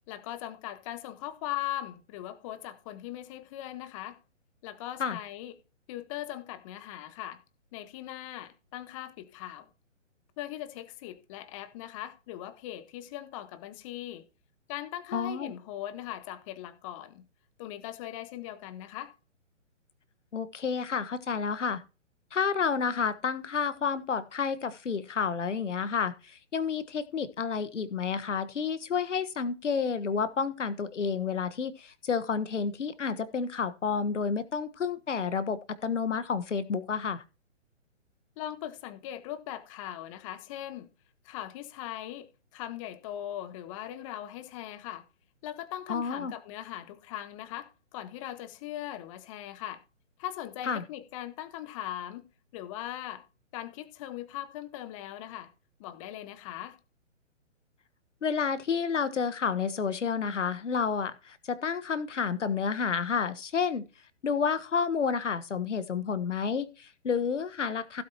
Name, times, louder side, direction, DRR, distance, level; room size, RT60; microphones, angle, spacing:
voice 1, 0.1-4.2 4.6-5.6 5.9-7.4 7.7-9.7 10.4-14.2 14.7-17.3 17.6-19.1 38.4-40.9 41.2-45.1 45.4-49.8 50.2-53.3 53.5-55.5 55.8-56.8, left 13 dB, 25° left, 1.2 m, -40 dB
voice 2, 15.1-15.5 20.3-21.8 22.3-37.2 45.9-46.3 50.7-50.8 58.2-63.9 64.2-68.0, left 6 dB, 70° left, 1.4 m, -30 dB
15.5 x 7.9 x 2.9 m
figure-of-eight pair, 135°, 38 cm